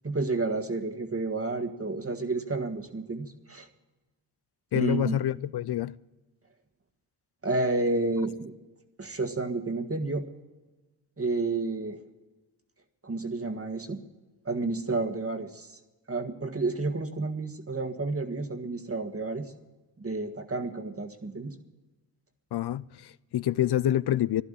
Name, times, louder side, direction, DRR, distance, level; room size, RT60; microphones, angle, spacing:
voice 1, 0.0-3.7 4.7-5.2 7.4-8.5 9.0-10.2 11.2-12.0 13.0-14.0 14.4-15.8 16.1-19.5 20.0-21.5, right 3 dB, 30° right, 1.6 m, -30 dB
voice 2, 4.7-6.0 22.5-24.4, left 12 dB, 60° left, 0.6 m, -27 dB
11.5 x 11.5 x 9.9 m
cardioid pair, 50°, 45 cm